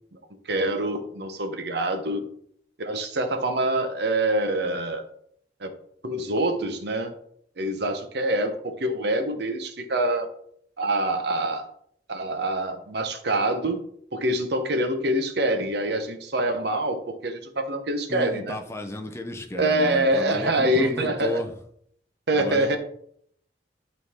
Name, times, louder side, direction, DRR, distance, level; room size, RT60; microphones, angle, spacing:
voice 1, 0.5-2.2 2.8-5.0 5.6-5.7 6.0-7.1 7.6-10.3 10.8-11.7 12.1-13.8 14.1-18.6 19.5-21.4 22.3-22.8, right 1 dB, 60° right, 7 dB, 1.0 m, -25 dB
voice 2, 18.1-21.6 22.3-22.8, left 1 dB, 15° left, 4 dB, 0.7 m, -33 dB
11.0 x 4.0 x 3.7 m, 0.67 s
head